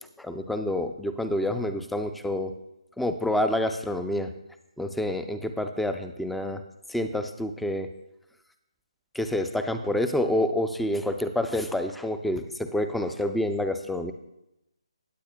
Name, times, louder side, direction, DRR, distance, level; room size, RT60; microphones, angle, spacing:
voice 1, 0.2-2.5 3.0-4.3 4.8-6.6 6.9-7.9 9.1-12.4 12.7-14.1, left 1 dB, ahead, 8 dB, 0.4 m, -28 dB
17.5 x 8.2 x 2.2 m, 0.89 s
figure-of-eight pair, 155°, 3 cm